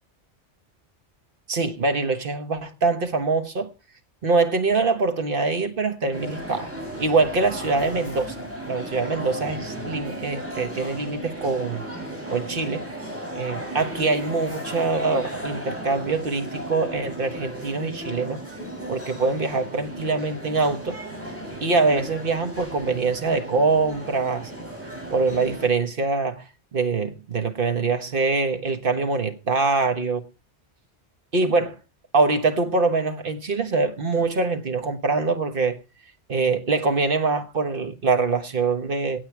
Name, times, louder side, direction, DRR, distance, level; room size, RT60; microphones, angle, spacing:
voice 1, 1.5-3.7 4.2-6.7 7.0-11.8 12.3-12.9 13.3-18.4 18.9-21.0 21.6-24.5 25.1-26.4 26.7-30.3 31.3-31.8 32.1-35.8 36.3-39.2, right 3 dB, 50° right, 1.5 m, -24 dB
sound 1, 6.1-25.7, right 1 dB, 10° right, 6.4 m, -35 dB
16.5 x 8.6 x 4.7 m
omnidirectional pair, 1.2 m